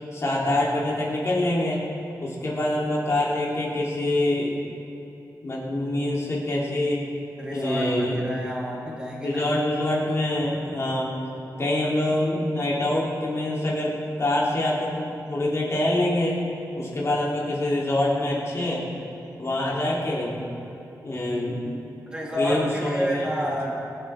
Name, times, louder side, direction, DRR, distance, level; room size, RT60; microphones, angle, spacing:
voice 1, 0.1-1.8 2.2-4.6 5.4-7.0 7.5-8.2 8.9-9.0 9.2-11.1 11.6-16.4 16.8-18.8 19.4-20.3 21.0-21.8 22.4-23.3, left 1 dB, 45° left, -5 dB, 3.6 m, -25 dB
voice 2, 7.4-9.5 22.1-23.7, equal, 15° right, -4 dB, 3.2 m, -30 dB
23.0 x 8.1 x 3.8 m, 2.7 s
wide cardioid pair, 95°, 7 cm